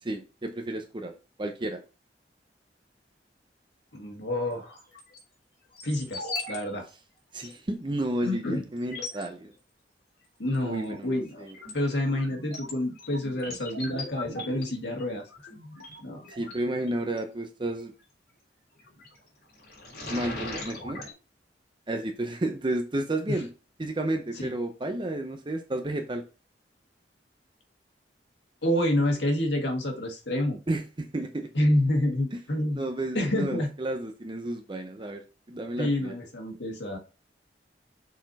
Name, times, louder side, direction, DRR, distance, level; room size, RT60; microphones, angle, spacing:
voice 1, 0.0-1.1 1.4-1.8 7.3-9.5 10.6-11.5 16.3-17.9 20.1-21.0 21.9-23.5 23.8-26.2 30.7-31.5 32.3-32.4 32.7-35.2 35.5-36.1, right 1 dB, 30° right, 5 dB, 0.6 m, -32 dB
voice 2, 3.9-4.8 5.8-6.9 8.2-8.7 10.4-11.5 11.7-15.2 16.0-16.2 23.3-23.4 24.4-24.5 28.6-30.6 31.5-32.8 33.1-33.7 35.8-37.0, left 1 dB, 80° left, 2 dB, 1.8 m, -28 dB
sound 1, 4.7-5.2 5.7-6.6 6.8-6.9 7.4-7.5 8.2-8.3 8.8-9.2 10.5-10.9 11.3-17.2 18.8-19.2 19.6-21.1, left 2 dB, 60° left, 3.3 m, -39 dB
6.2 x 4.3 x 4.1 m, 0.33 s
head